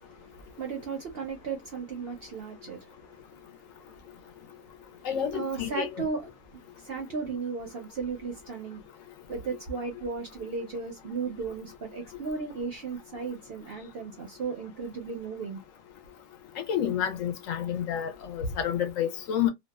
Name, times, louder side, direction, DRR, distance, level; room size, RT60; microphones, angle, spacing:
voice 1, 0.0-5.1 5.3-8.8 9.3-15.6, right 5 dB, 60° right, 0.6 m, -36 dB
voice 2, 5.0-6.0 16.6-19.5, left 9 dB, 70° left, 0.9 m, -29 dB
2.7 x 2.2 x 2.2 m
omnidirectional pair, 1.5 m